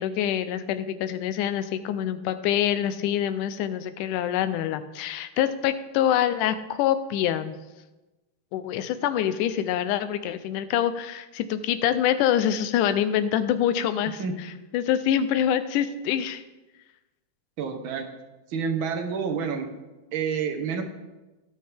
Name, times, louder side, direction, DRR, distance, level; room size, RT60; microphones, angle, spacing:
voice 1, 0.0-7.6 8.5-16.4, left 10 dB, 85° left, 11 dB, 2.2 m, -25 dB
voice 2, 17.6-18.1 18.5-19.7 20.1-20.8, right 6 dB, 60° right, 4 dB, 1.4 m, -28 dB
18.0 x 6.4 x 3.4 m, 1.1 s
omnidirectional pair, 3.5 m